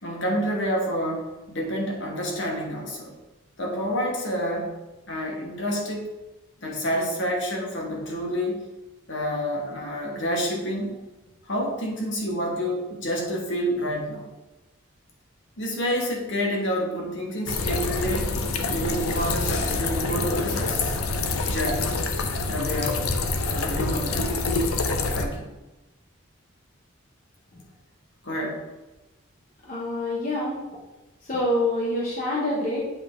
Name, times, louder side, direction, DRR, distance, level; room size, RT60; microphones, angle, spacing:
voice 1, 0.0-3.1 3.6-4.8 5.1-6.1 6.6-8.7 9.1-10.9 11.5-14.3 15.6-18.3 18.7-21.0 21.5-22.0 22.5-23.0 23.5-24.4 25.1-25.5 28.2-28.6, equal, 55° left, -1 dB, 1.3 m, -28 dB
sound 1, 17.5-25.2, left 3 dB, 85° left, 0.6 m, -26 dB
voice 2, 29.6-30.6 31.2-32.8, left 1 dB, 40° left, -5 dB, 1.0 m, -26 dB
8.1 x 3.7 x 3.7 m, 1.1 s
head